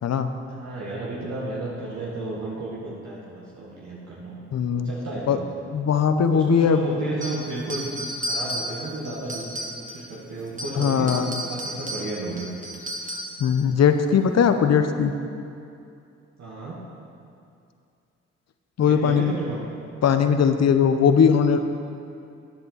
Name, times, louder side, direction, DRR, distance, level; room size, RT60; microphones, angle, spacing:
voice 1, 0.5-4.4 4.8-5.4 6.3-11.1 11.4-12.5 16.4-16.8 18.8-19.6, right 2 dB, 65° right, -5 dB, 1.9 m, -33 dB
voice 2, 4.5-4.9 5.3-5.4 5.7-6.8 10.7-11.3 13.4-15.1 18.8-19.3 20.0-21.7, left 7 dB, 55° left, 8 dB, 0.9 m, -19 dB
sound 1, 7.2-10.1 10.5-13.5, equal, 25° right, 2.1 m, -33 dB
11.5 x 10.5 x 4.1 m, 2.5 s
hypercardioid pair, 40°, 31 cm